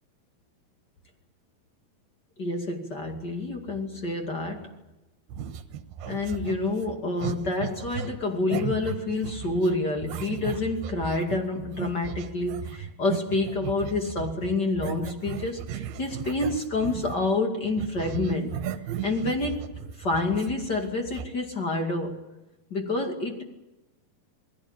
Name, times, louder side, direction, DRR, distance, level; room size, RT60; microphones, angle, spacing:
voice 1, 2.4-4.7 6.1-18.6 19.0-19.6 20.0-22.2 22.7-23.4, left 2 dB, 30° left, 3 dB, 2.6 m, -28 dB
sound 1, 5.3-17.4 17.6-21.3, right 8 dB, 85° right, 3.1 m, -36 dB
28.0 x 20.0 x 8.9 m, 1.0 s
omnidirectional pair, 4.4 m